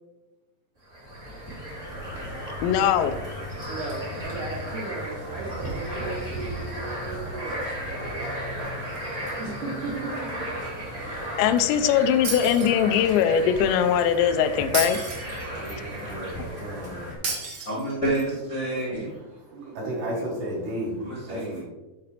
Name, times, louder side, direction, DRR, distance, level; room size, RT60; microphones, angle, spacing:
sound 1, 0.9-17.1, equal, 25° right, 1.6 m, -34 dB
voice 1, 2.6-3.2 11.4-15.0, left 8 dB, 85° left, 9 dB, 2.9 m, -21 dB
voice 2, 3.7-7.7 9.4-10.5 10.9-11.4 18.7-19.1 19.5-20.3, right 3 dB, 90° right, -2 dB, 1.8 m, -36 dB
Shatter, 12.2-13.2 14.7-15.8 17.2-18.2, right 3 dB, 50° right, 2.3 m, -32 dB
voice 3, 15.5-17.0 19.5-21.6, equal, 65° right, -4 dB, 4.0 m, -34 dB
voice 4, 17.6-19.1 21.0-21.6, right 1 dB, 35° left, -5 dB, 1.2 m, -28 dB
11.0 x 4.7 x 3.3 m, 1.1 s
omnidirectional pair, 5.1 m